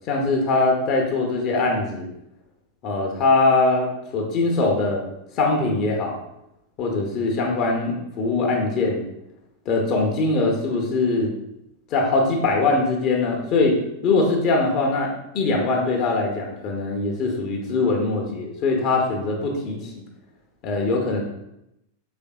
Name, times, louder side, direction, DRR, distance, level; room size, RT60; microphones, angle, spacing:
voice 1, 0.1-2.1 2.8-5.0 5.4-6.2 6.8-9.0 9.7-11.3 11.9-13.8 14.0-20.0 20.6-21.2, left 3 dB, 40° left, 1 dB, 0.7 m, -22 dB
4.2 x 3.3 x 2.3 m, 0.84 s
figure-of-eight pair, 90°, 0 cm